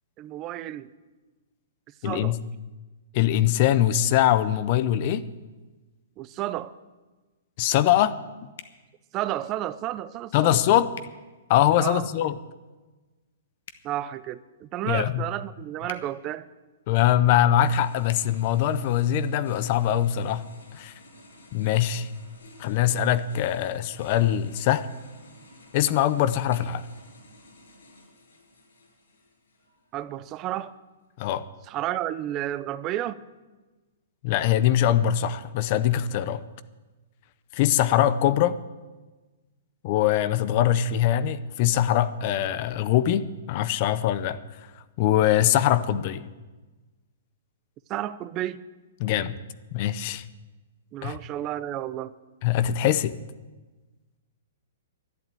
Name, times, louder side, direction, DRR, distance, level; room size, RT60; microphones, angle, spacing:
voice 1, 0.2-0.9 2.0-2.4 6.2-6.7 9.1-10.6 11.8-12.1 13.8-16.5 29.9-30.7 31.7-33.2 47.9-48.6 50.9-52.1, right 13 dB, 30° right, 16 dB, 0.6 m, -31 dB
voice 2, 2.0-2.4 3.1-5.3 7.6-8.2 10.3-10.9 11.5-12.3 14.8-15.3 16.9-20.4 20.7-20.9 21.5-22.1 22.6-24.9 25.7-26.8 31.2-31.4 34.2-36.4 37.5-38.6 39.8-44.4 45.0-46.2 49.0-49.3 49.7-50.2 51.0-51.2 52.4-53.2, left 11 dB, 40° left, 14 dB, 0.7 m, -22 dB
sound 1, 8.5-8.8 10.9-11.1 13.6-13.8 15.8-16.0 18.0-18.2, left 8 dB, 65° left, 1.2 m, -43 dB
sound 2, 17.6-29.9, left 2 dB, 90° left, 6.5 m, -52 dB
12.0 x 11.0 x 9.0 m, 1.2 s
hypercardioid pair, 150°, 0 cm